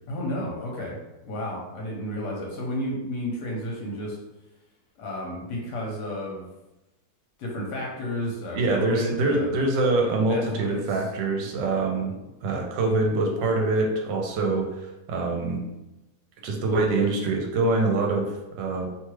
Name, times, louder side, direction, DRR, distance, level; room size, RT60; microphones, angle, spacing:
voice 1, 0.1-4.2 5.0-6.5 7.4-9.6 10.3-10.8 11.4-11.5, left 1 dB, 70° left, -2 dB, 1.2 m, -32 dB
voice 2, 8.5-12.1 12.4-15.6 16.4-18.9, right 2 dB, 80° right, 1 dB, 1.3 m, -24 dB
3.0 x 2.3 x 3.1 m, 0.98 s
omnidirectional pair, 1.9 m